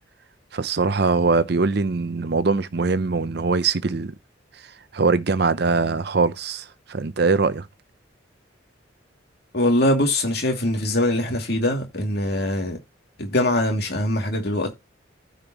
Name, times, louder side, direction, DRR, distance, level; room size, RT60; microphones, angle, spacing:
voice 1, 0.5-4.1 4.9-7.7, right 4 dB, 55° right, 0.6 m, -22 dB
voice 2, 9.5-12.8 13.2-14.7, left 1 dB, 55° left, 2.6 m, -22 dB
15.0 x 5.3 x 3.0 m
head